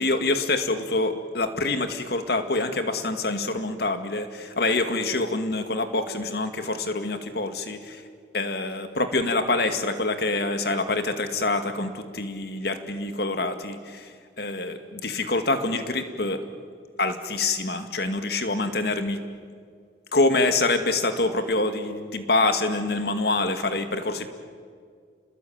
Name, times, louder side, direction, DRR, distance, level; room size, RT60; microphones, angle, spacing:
voice 1, 0.0-8.0 8.3-14.1 14.4-16.4 17.0-19.2 20.1-24.3, left 2 dB, 55° left, 8 dB, 2.1 m, -26 dB
30.0 x 20.5 x 8.9 m, 2.1 s
head